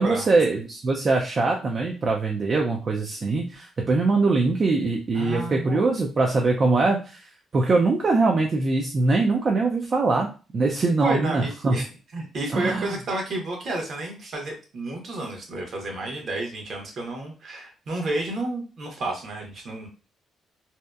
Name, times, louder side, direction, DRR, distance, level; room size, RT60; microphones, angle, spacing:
voice 1, 0.0-7.3 7.5-10.3 10.5-11.8 12.5-13.0, right 3 dB, 40° right, 1 dB, 0.4 m, -22 dB
voice 2, 5.1-5.9 11.0-11.9 12.1-19.9, right 2 dB, 55° right, 1 dB, 0.9 m, -31 dB
2.7 x 2.1 x 2.3 m, 0.34 s
cardioid pair, 90°, 0 cm